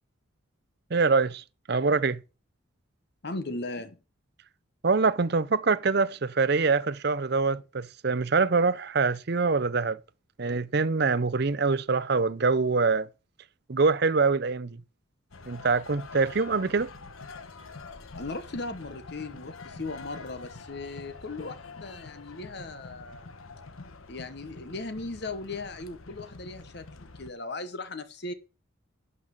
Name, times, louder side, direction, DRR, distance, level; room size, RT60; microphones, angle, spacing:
voice 1, 0.9-2.2 4.8-10.0 10.4-13.1 13.7-14.8 15.5-16.9, right 4 dB, 50° right, 0.6 m, -24 dB
voice 2, 3.2-4.0 18.2-23.3 24.1-28.3, left 2 dB, 50° left, 1.0 m, -37 dB
sound 1, 15.3-27.3, left 3 dB, 80° left, 1.2 m, -45 dB
12.0 x 5.5 x 7.4 m
head